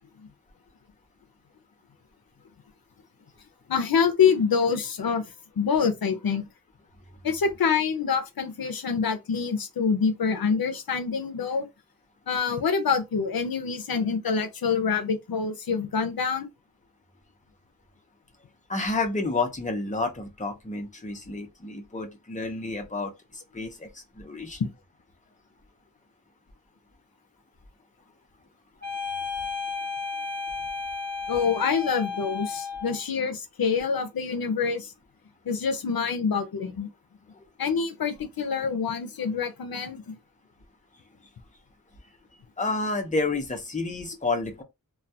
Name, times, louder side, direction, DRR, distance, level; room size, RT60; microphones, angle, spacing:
voice 1, 3.7-5.2 5.6-6.5 7.2-11.7 12.3-16.5 24.6-24.7 31.3-34.9 35.5-36.9 37.6-40.2, left 6 dB, 85° left, 0.5 m, -26 dB
voice 2, 18.7-24.6 37.3-37.4 42.6-44.6, left 3 dB, 20° left, 0.6 m, -30 dB
sound 1, 28.8-33.0, left 5 dB, 50° right, 0.8 m, -33 dB
2.2 x 2.2 x 2.6 m
wide cardioid pair, 55°, 35 cm